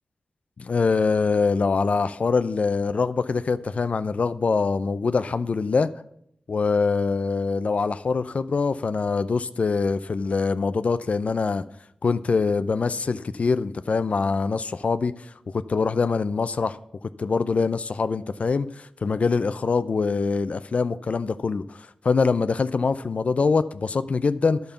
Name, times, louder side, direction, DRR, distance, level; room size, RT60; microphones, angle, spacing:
voice 1, 0.6-5.9 6.5-11.7 12.0-16.8 17.2-24.6, left 4 dB, 65° left, 13 dB, 0.5 m, -24 dB
10.0 x 5.3 x 7.0 m, 0.71 s
cardioid pair, 45°, 2 cm